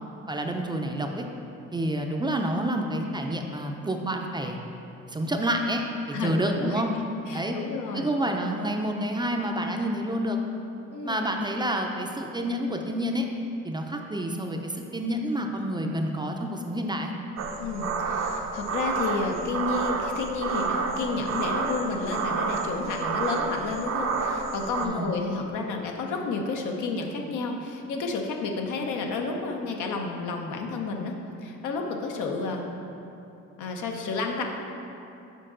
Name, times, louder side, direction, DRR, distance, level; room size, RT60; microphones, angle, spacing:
voice 1, 0.3-1.3 1.7-4.6 5.1-6.9 7.3-7.6 7.9-10.4 11.0-13.3 13.6-17.1 24.8-25.1, right 1 dB, 15° right, 2 dB, 0.4 m, -28 dB
voice 2, 6.1-6.7 7.3-8.1 10.9-11.2 17.6-31.1 31.4-32.6 33.6-34.4, left 3 dB, 80° left, 2 dB, 0.7 m, -31 dB
sound 1, 17.4-24.9, right 4 dB, 60° right, 0.6 m, -29 dB
6.6 x 4.7 x 3.8 m, 2.8 s
cardioid pair, 90°, 30 cm